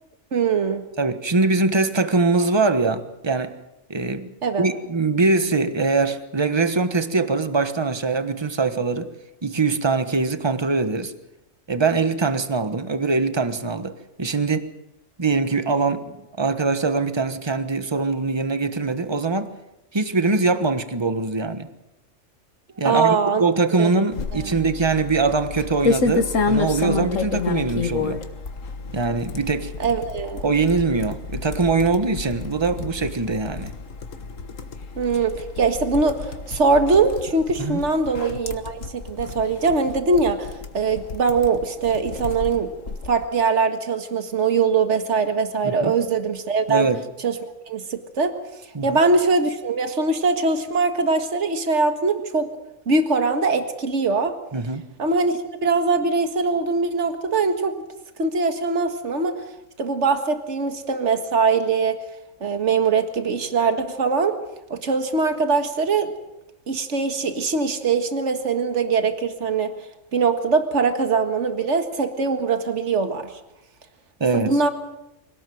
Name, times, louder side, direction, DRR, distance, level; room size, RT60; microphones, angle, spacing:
voice 1, 0.3-0.9 4.4-4.7 22.8-23.4 23.8-23.9 24.3-24.5 29.8-30.4 35.0-40.5 40.7-42.7 43.1-46.9 47.2-47.4 47.7-48.3 48.8-52.5 52.9-54.4 55.0-57.8 58.2-59.4 59.8-62.0 62.4-64.4 64.7-66.1 66.7-69.7 70.1-73.3 74.3-74.7, right 4 dB, 65° right, 2.1 m, -22 dB
voice 2, 1.0-3.6 3.9-4.3 4.6-9.1 9.4-11.1 11.7-14.7 15.2-19.5 19.9-21.7 22.8-28.2 28.9-29.7 30.4-33.7 37.6-37.8 45.6-45.9 46.7-47.0 48.7-49.0 54.5-54.9 74.2-74.6, right 3 dB, 20° right, 1.3 m, -22 dB
sound 1, 24.1-43.2, left 4 dB, 75° left, 1.8 m, -30 dB
25.0 x 18.5 x 7.9 m
omnidirectional pair, 1.3 m